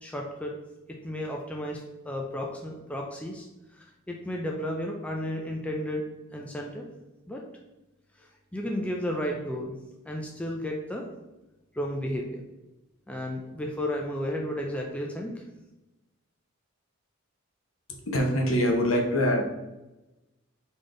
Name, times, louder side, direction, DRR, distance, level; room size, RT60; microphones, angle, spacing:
voice 1, 0.0-0.5 1.0-3.5 3.7-6.0 6.3-6.8 7.3-7.4 8.2-9.7 10.1-11.1 11.7-12.4 13.1-15.3, equal, 5° left, 0 dB, 0.4 m, -33 dB
voice 2, 18.1-19.4, equal, 65° left, 1 dB, 0.9 m, -24 dB
4.1 x 3.4 x 3.7 m, 1.0 s
head